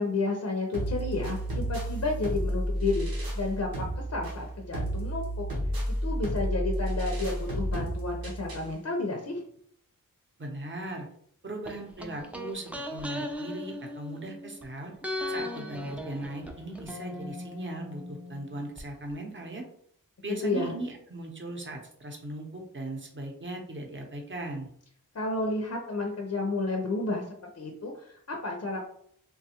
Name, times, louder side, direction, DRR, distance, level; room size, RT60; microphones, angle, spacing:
voice 1, 0.0-3.1 3.3-5.5 6.0-9.4 20.4-20.7 25.1-27.2 27.6-28.8, left 3 dB, 50° left, 1 dB, 0.5 m, -31 dB
sound 1, 0.7-8.7, equal, 90° right, 0.9 m, -32 dB
voice 2, 10.4-11.1 11.4-14.9 15.3-19.6 20.2-24.7, right 1 dB, 35° right, 1 dB, 0.7 m, -38 dB
sound 2, 11.7-14.6 15.0-18.8 19.1-19.2, left 1 dB, 5° right, 0.4 m, -38 dB
3.1 x 2.3 x 2.8 m, 0.65 s
wide cardioid pair, 70°, 34 cm